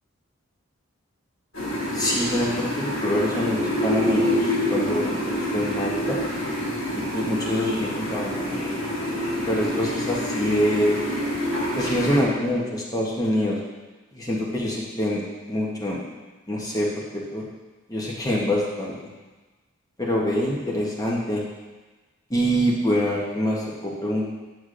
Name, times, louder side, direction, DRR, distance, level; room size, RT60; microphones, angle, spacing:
sound 1, 1.5-12.2, equal, 75° left, 2.2 m, -27 dB
voice 1, 1.9-6.2 6.9-8.7 9.5-11.0 11.8-13.6 14.1-15.2 15.5-16.0 16.5-17.4 17.9-19.0 20.0-21.4 22.3-24.3, equal, 15° left, -4 dB, 0.8 m, -25 dB
8.0 x 6.1 x 2.5 m, 1.2 s
head